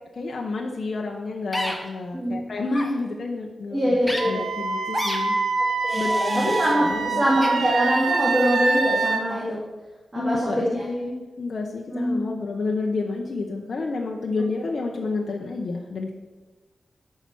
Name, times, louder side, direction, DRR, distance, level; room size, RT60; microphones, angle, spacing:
voice 1, 0.2-4.0 4.3-5.3 6.0-6.5 6.8-7.3 10.1-16.1, left 3 dB, 60° left, 0 dB, 1.0 m, -29 dB
sound 1, 1.5-1.8 2.7-2.9 4.0-4.2 4.9-5.2 5.9-6.7 7.4-7.5, equal, ahead, 1.6 m, -29 dB
voice 2, 3.7-4.4 5.8-9.6 10.1-10.8 11.9-12.2, equal, 15° right, -6 dB, 2.6 m, -23 dB
Wind instrument woodwind instrument, 4.2-9.2, right 4 dB, 85° right, 1.0 m, -25 dB
13.0 x 5.8 x 6.1 m, 1.2 s
wide cardioid pair, 125°, 0 cm